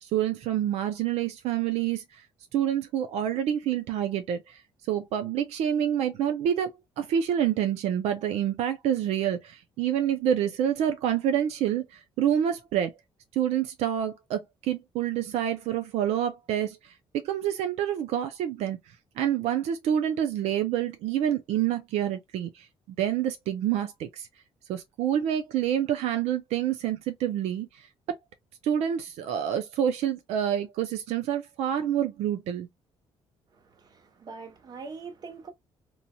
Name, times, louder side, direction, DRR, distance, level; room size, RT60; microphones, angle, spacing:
voice 1, 0.0-2.2 2.5-4.6 4.9-12.9 13.3-16.9 17.2-18.8 19.2-22.7 23.0-24.3 24.7-27.9 28.6-32.7, right 10 dB, 80° right, 0.4 m, -27 dB
voice 2, 33.6-35.5, right 4 dB, 40° right, 0.9 m, -43 dB
3.0 x 2.7 x 2.2 m
cardioid pair, 145°, 11 cm